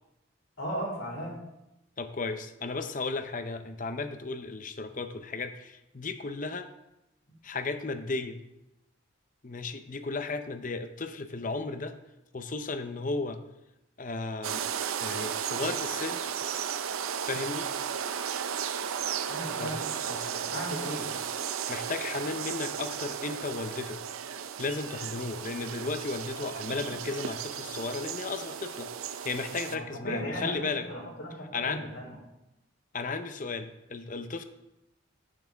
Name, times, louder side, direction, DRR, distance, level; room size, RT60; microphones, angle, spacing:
voice 1, 0.6-1.4 19.3-21.1 29.6-32.2, equal, 80° left, -4 dB, 3.7 m, -37 dB
voice 2, 2.0-6.7 7.4-8.4 9.4-11.9 12.3-13.4 14.0-14.7 15.0-16.2 17.2-17.7 19.6-19.8 20.1-20.3 21.7-24.0 24.6-30.9 31.5-31.8 32.9-34.4, left 3 dB, 40° left, 9 dB, 0.7 m, -34 dB
sound 1, 14.4-29.8, right 8 dB, 90° right, 0.5 m, -35 dB
10.5 x 8.7 x 3.5 m, 0.91 s
head